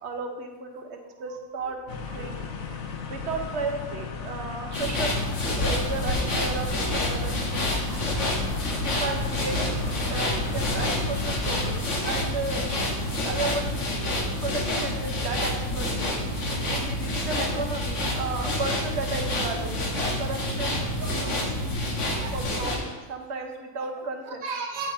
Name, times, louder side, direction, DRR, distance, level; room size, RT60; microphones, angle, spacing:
voice 1, 0.0-1.8 2.1-2.4 3.1-5.1 5.6-7.8 8.8-11.8 12.0-12.7 13.2-16.1 16.7-19.9 20.2-21.7 22.3-24.4, right 3 dB, 55° right, 3 dB, 1.2 m, -34 dB
sound 1, 1.9-11.8, left 6 dB, 80° left, 1.3 m, -36 dB
sound 2, 4.7-22.8, left 1 dB, 60° left, 1.5 m, -28 dB
voice 2, 7.7-8.3 15.3-15.5 16.6-16.7 17.3-17.4 20.3-20.4 20.7-21.8 22.2-22.4 24.4-24.9, right 4 dB, 80° right, 4 dB, 1.3 m, -37 dB
9.0 x 8.5 x 2.8 m, 1.3 s
omnidirectional pair, 1.4 m